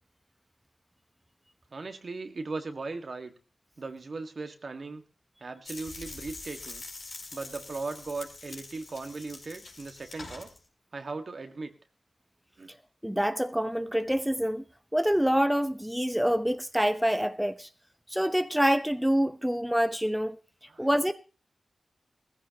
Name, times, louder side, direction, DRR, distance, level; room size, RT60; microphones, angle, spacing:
voice 1, 1.7-3.3 3.8-5.0 5.4-6.8 7.3-10.5 10.9-11.7 12.6-12.7 20.7-20.9, right 3 dB, 60° right, 1.8 m, -38 dB
sound 1, 5.6-10.6, left 3 dB, 75° left, 5.0 m, -44 dB
voice 2, 13.0-14.6 14.9-17.7 18.1-20.4 20.8-21.1, equal, 5° right, 0.9 m, -26 dB
17.5 x 15.0 x 2.9 m
cardioid pair, 50°, 0 cm